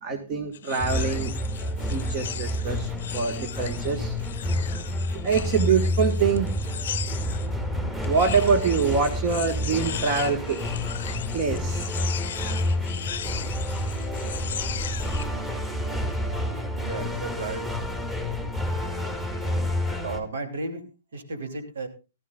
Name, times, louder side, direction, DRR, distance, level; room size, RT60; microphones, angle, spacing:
voice 1, 0.0-4.2 5.1-7.0 7.9-10.7 11.3-11.9 14.7-14.8, right 5 dB, 40° right, 6 dB, 1.7 m, -26 dB
sound 1, 0.5-7.5 8.0-15.3, left 9 dB, 65° left, 0.6 m, -37 dB
sound 2, 0.8-20.2, left 1 dB, 15° right, 2.4 m, -29 dB
voice 2, 16.8-17.7 20.0-20.9 21.1-21.9, right 3 dB, 70° right, 7 dB, 2.8 m, -33 dB
17.5 x 13.5 x 2.5 m, 0.30 s
hypercardioid pair, 115°, 0 cm